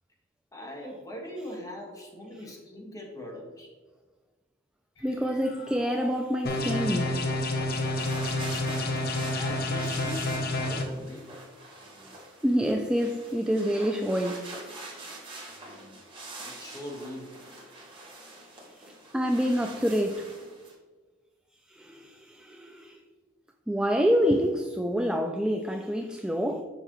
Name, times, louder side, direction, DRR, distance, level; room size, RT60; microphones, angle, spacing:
voice 1, 0.5-3.7 8.6-8.9 9.2-11.3 16.4-17.4, equal, 20° left, 1.5 m, -41 dB
sound 1, 5.0-8.4, left 2 dB, 75° left, 1.8 m, -47 dB
voice 2, 5.0-7.2 12.4-14.8 19.1-20.3 21.7-23.0 23.7-26.6, equal, 5° right, 0.3 m, -27 dB
sound 2, 6.4-10.8, left 2 dB, 55° left, 0.8 m, -29 dB
sound 3, 7.6-20.7, right 2 dB, 25° right, 1.4 m, -45 dB
6.8 x 5.4 x 3.0 m
head